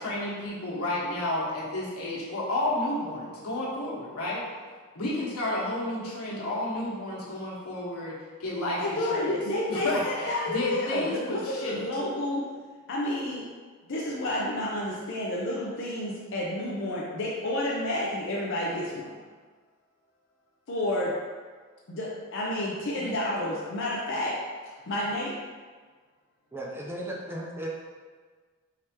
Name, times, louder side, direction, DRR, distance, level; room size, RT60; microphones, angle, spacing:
voice 1, 0.0-4.4 4.9-9.3 9.7-11.8 22.9-23.1, left 1 dB, 90° left, -7 dB, 1.4 m, -31 dB
voice 2, 8.8-12.5 12.9-13.4 13.9-19.1 20.7-21.1 21.9-24.3 24.9-25.4, left 1 dB, 60° left, -5 dB, 0.6 m, -30 dB
voice 3, 26.5-27.7, right 1 dB, 10° right, -2 dB, 0.5 m, -35 dB
4.8 x 3.4 x 2.9 m, 1.5 s
head